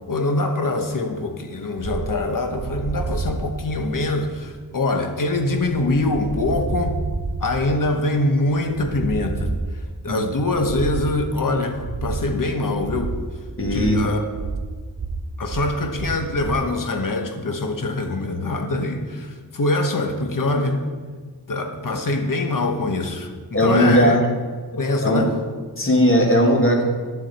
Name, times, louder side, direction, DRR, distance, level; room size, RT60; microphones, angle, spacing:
voice 1, 0.1-7.0 7.4-9.5 10.0-13.1 13.7-14.2 15.4-20.8 21.5-24.2 24.7-25.3, left 2 dB, 55° left, 5 dB, 1.0 m, -24 dB
sound 1, 1.8-16.7, right 4 dB, 35° right, 0.6 m, -30 dB
voice 2, 13.6-14.2 21.9-22.0 23.5-24.3 25.0-25.3 25.8-26.8, equal, 30° left, 1 dB, 1.7 m, -18 dB
11.0 x 7.0 x 4.1 m, 1.5 s
wide cardioid pair, 85°, 39 cm